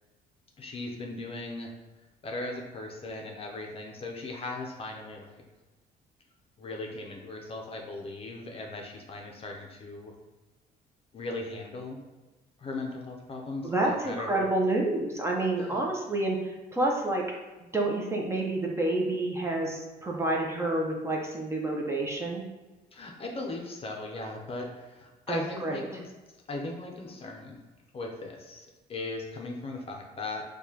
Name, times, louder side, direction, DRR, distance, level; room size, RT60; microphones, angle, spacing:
voice 1, 0.6-1.7 2.2-5.4 6.6-10.1 11.1-12.0 12.6-14.3 15.6-15.8 22.9-26.1 26.5-27.6 27.9-30.4, left 2 dB, 35° left, 1 dB, 0.6 m, -38 dB
voice 2, 13.6-17.2 17.7-22.4 25.3-25.9, right 2 dB, 15° right, -1 dB, 0.6 m, -29 dB
4.6 x 2.3 x 2.8 m, 1.2 s
cardioid pair, 110°, 17 cm